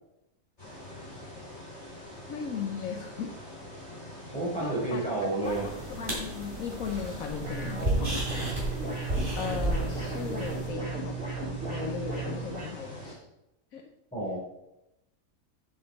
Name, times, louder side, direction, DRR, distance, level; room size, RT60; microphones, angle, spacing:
sound 1, 0.6-13.1, left 1 dB, 45° left, 4.5 m, -44 dB
voice 1, 2.3-3.3 4.6-8.5 9.3-11.2 11.6-13.3 13.7-13.8, left 6 dB, 70° left, 4 dB, 1.1 m, -37 dB
voice 2, 4.3-5.7 14.1-14.4, right 2 dB, 5° left, -5 dB, 3.5 m, -30 dB
sound 2, 5.4-10.7, right 1 dB, 35° right, 3.2 m, -33 dB
sound 3, 7.4-12.7, right 3 dB, 60° right, 3.8 m, -35 dB
9.0 x 7.7 x 4.0 m, 0.88 s
omnidirectional pair, 1.6 m